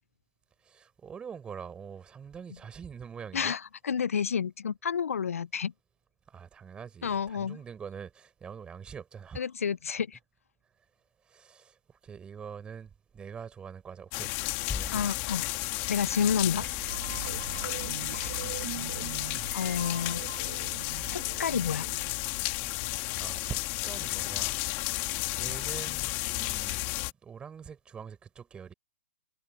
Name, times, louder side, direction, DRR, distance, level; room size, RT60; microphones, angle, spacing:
voice 1, 0.6-3.6 6.3-9.4 11.3-14.4 14.7-15.1 17.4-17.6 22.9-24.6 24.9-26.9 27.2-28.7, right 7 dB, 15° right, 5.5 m, -44 dB
voice 2, 3.3-5.7 7.0-7.6 9.4-10.2 14.9-15.5 15.9-16.7 18.1-18.4 19.5-20.2 21.0-21.9, left 7 dB, 85° left, 0.5 m, -30 dB
sound 1, 14.1-27.1, left 25 dB, 30° left, 2.1 m, -33 dB
sound 2, 14.7-16.5, left 5 dB, 10° left, 6.5 m, -41 dB
sound 3, 16.5-23.4, right 13 dB, 50° right, 2.0 m, -42 dB
hypercardioid pair, 145°, 8 cm